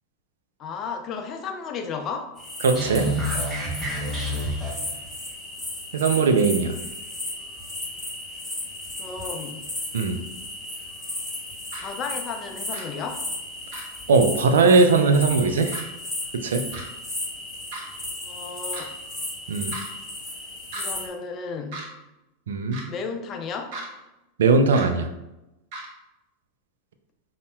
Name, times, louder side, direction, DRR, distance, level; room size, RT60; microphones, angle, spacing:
voice 1, 0.6-2.3 9.0-9.7 11.8-13.2 18.2-18.9 20.7-21.9 22.8-23.7, left 5 dB, 35° left, 4 dB, 0.5 m, -33 dB
sound 1, 2.4-21.1, left 1 dB, ahead, 1.2 m, -35 dB
voice 2, 2.6-3.1 5.9-6.8 9.9-10.2 14.1-15.8 16.4-16.6 19.5-19.8 22.5-22.8 24.4-25.1, right 4 dB, 75° right, 8 dB, 0.3 m, -19 dB
sound 2, 2.7-5.0, equal, 25° right, 0.6 m, -28 dB
sound 3, 11.7-11.8 12.7-12.8 13.7-13.8 14.7-14.8 15.7-15.8 16.7-16.8 17.7-17.9 18.7-18.8 19.7-19.9 20.7-20.8 21.7-21.9 22.7-22.9 23.7-23.9 24.7-24.9 25.7-25.9, right 3 dB, 55° right, 0.8 m, -36 dB
5.3 x 2.1 x 2.2 m, 0.96 s
figure-of-eight pair, 90°, 0 cm